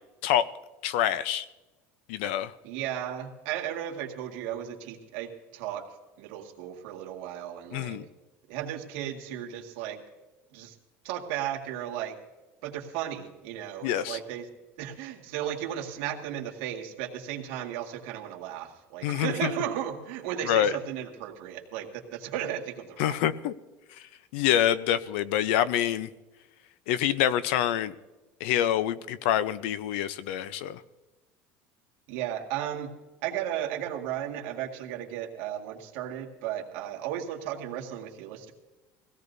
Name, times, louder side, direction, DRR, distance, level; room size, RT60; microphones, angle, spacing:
voice 1, 0.8-1.4 2.1-2.5 7.7-8.0 13.8-14.2 19.0-19.5 20.4-20.7 23.0-23.5 24.3-26.1 26.9-27.9 28.4-30.8, left 11 dB, 85° left, 15 dB, 0.7 m, -26 dB
voice 2, 2.6-8.0 8.5-10.0 10.5-10.8 11.0-12.2 12.6-14.5 14.8-23.2 32.1-32.9 33.2-38.5, right 10 dB, 75° right, 1 dB, 2.0 m, -35 dB
22.5 x 17.0 x 2.7 m, 1.1 s
cardioid pair, 175°, 6 cm